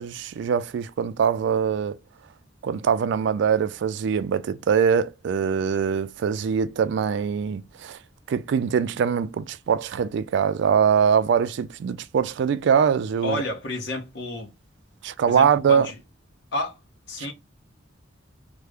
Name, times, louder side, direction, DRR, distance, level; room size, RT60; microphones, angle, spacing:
voice 1, 0.0-2.0 2.6-8.0 8.3-13.4 15.0-15.9 17.2-17.3, right 7 dB, 65° right, 0.3 m, -23 dB
voice 2, 13.2-14.5 15.2-16.0 16.5-16.8 17.1-17.3, left 1 dB, 65° left, 1.0 m, -30 dB
3.3 x 2.1 x 3.4 m
head